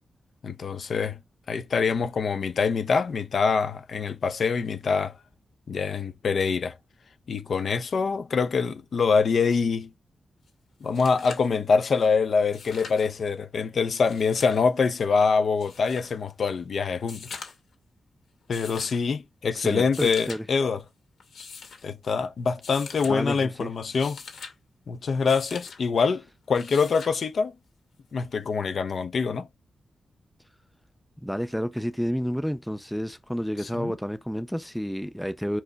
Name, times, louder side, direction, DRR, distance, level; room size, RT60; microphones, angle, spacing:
voice 1, 0.4-1.2 1.5-5.1 5.7-6.7 7.3-9.9 10.8-17.2 18.5-20.8 21.8-24.2 24.9-27.5 28.1-29.5 33.8-33.9, left 5 dB, 55° left, 0.9 m, -25 dB
sound 1, 10.5-10.6 10.8-11.5 12.4-13.1 13.9-14.6 15.6-16.1 17.0-17.7 18.5-19.0 19.8-20.4 21.2-21.8 22.6-23.1 23.8-24.5 25.3-25.8 26.5-27.2 28.6-28.7, left 5 dB, 80° left, 2.3 m, -43 dB
voice 2, 19.5-20.5 23.0-23.7 31.2-35.6, equal, ahead, 0.5 m, -30 dB
5.5 x 4.6 x 4.6 m
wide cardioid pair, 155°, 0 cm